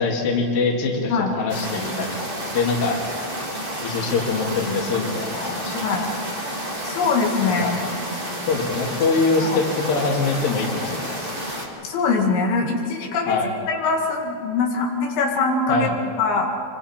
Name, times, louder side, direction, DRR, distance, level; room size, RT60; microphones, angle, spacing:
voice 1, 0.0-2.1 2.4-3.0 3.8-6.1 7.6-7.7 8.5-11.3 13.3-13.5 15.7-15.9, left 4 dB, 60° left, 0 dB, 3.9 m, -23 dB
sound 1, 1.5-11.6, equal, 15° right, 1.9 m, -30 dB
voice 2, 5.7-6.1 6.8-7.9 9.4-9.6 11.8-13.4 13.7-15.9 16.2-16.5, left 4 dB, 90° left, 0 dB, 4.3 m, -22 dB
26.0 x 25.0 x 4.4 m, 2.6 s
omnidirectional pair, 5.0 m